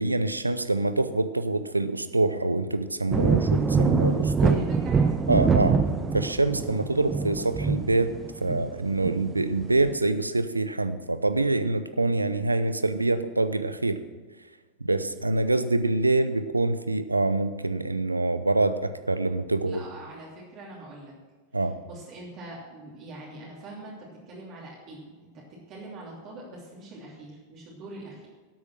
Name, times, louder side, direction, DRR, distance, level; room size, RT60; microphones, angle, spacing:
voice 1, 0.0-4.6 5.3-5.8 6.1-8.1 8.4-14.0 14.8-19.8 21.5-21.7, right 2 dB, 80° right, 12 dB, 0.7 m, -25 dB
sound 1, 3.1-9.9, right 5 dB, 20° right, 0.8 m, -25 dB
voice 2, 4.4-5.2 19.6-21.1 21.5-28.3, right 2 dB, 35° right, -4 dB, 3.0 m, -43 dB
12.0 x 8.3 x 6.2 m, 1.4 s
figure-of-eight pair, 90°, 0 cm